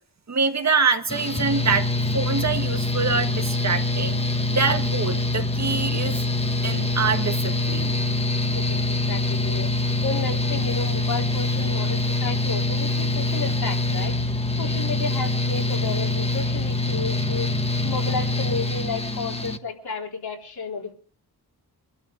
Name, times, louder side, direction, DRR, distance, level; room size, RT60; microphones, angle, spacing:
voice 1, 0.3-4.2 4.5-6.2 6.6-7.9, right 5 dB, 45° right, 1.7 m, -25 dB
Mechanical fan, 1.1-19.6, left 2 dB, 15° left, 1.1 m, -24 dB
voice 2, 9.1-9.7 10.0-17.5 17.8-20.9, left 4 dB, 70° left, 3.8 m, -32 dB
24.5 x 12.5 x 3.9 m
wide cardioid pair, 115°, 39 cm